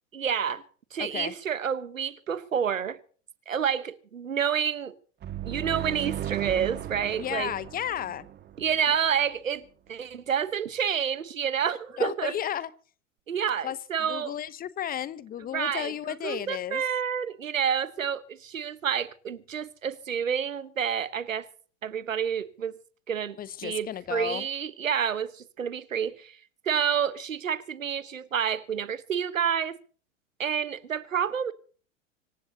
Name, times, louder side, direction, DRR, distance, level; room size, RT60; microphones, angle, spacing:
voice 1, 0.1-0.6 0.9-3.0 3.5-4.9 5.4-7.5 8.6-12.3 13.3-14.3 15.5-21.5 21.8-22.8 23.1-23.4 23.6-26.4 26.6-29.8 30.4-31.5, right 8 dB, 80° right, 1.3 m, -29 dB
voice 2, 1.0-1.3 7.2-8.3 12.0-12.7 13.6-13.8 14.1-16.8 23.4-24.5, left 10 dB, 20° left, 0.9 m, -33 dB
sound 1, 5.2-9.0, right 11 dB, 25° right, 1.8 m, -36 dB
25.5 x 15.5 x 2.9 m
figure-of-eight pair, 90°, 39 cm